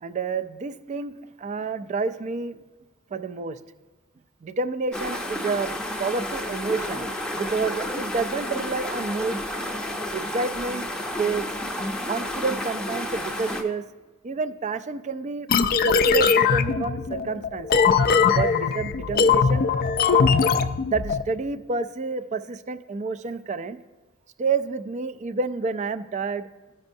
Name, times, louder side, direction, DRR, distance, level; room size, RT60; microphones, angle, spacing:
voice 1, 0.0-2.6 3.1-3.6 4.4-5.7 6.0-7.1 7.3-9.4 10.1-10.9 11.2-11.5 12.0-13.8 14.2-15.5 15.8-17.9 18.3-19.7 20.1-20.3 20.9-23.8 24.4-26.5, right 4 dB, 35° right, 12 dB, 0.3 m, -29 dB
sound 1, 4.9-13.6, left 1 dB, 5° left, 0.6 m, -31 dB
sound 2, 15.5-21.2, left 5 dB, 45° left, 0.3 m, -20 dB
13.5 x 5.3 x 2.6 m, 1.3 s
head